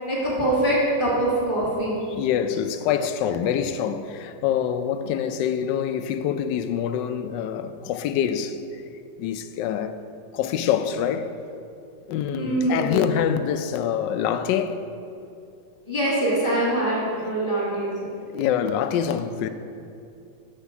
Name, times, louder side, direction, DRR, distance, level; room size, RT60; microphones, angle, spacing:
voice 1, 0.1-2.0 12.3-13.1 15.9-17.9, right 1 dB, 25° left, 2.3 m, -23 dB
voice 2, 2.1-8.6 9.2-10.0 10.3-11.3 12.1-14.8 18.2-19.5, left 8 dB, 75° left, 1.2 m, -25 dB
8.2 x 6.7 x 5.9 m
omnidirectional pair, 2.0 m